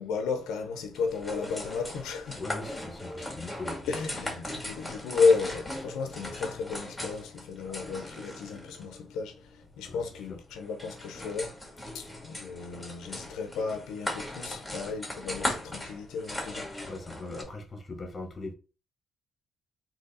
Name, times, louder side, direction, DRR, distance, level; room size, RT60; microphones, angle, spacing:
voice 1, 0.0-2.4 3.8-16.8, left 4 dB, 90° left, 0.7 m, -32 dB
sound 1, 0.9-17.4, left 1 dB, 10° left, 2.0 m, -39 dB
voice 2, 2.3-3.9 7.6-7.8 9.8-10.0 10.3-10.4 16.8-18.5, left 2 dB, 30° left, 1.4 m, -40 dB
3.9 x 2.9 x 4.1 m
cardioid pair, 90°, 0 cm